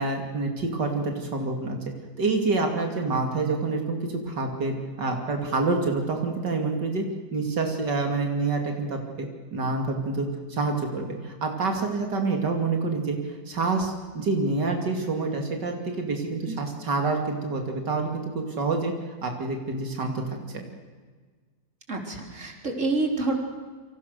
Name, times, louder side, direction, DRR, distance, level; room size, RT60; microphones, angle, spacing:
voice 1, 0.0-1.8 2.2-7.0 7.3-18.9 19.2-20.6, right 3 dB, 90° right, 3 dB, 3.3 m, -27 dB
voice 2, 21.9-23.3, right 3 dB, 45° right, 2 dB, 4.3 m, -28 dB
28.0 x 25.5 x 6.7 m, 1.5 s
omnidirectional pair, 1.8 m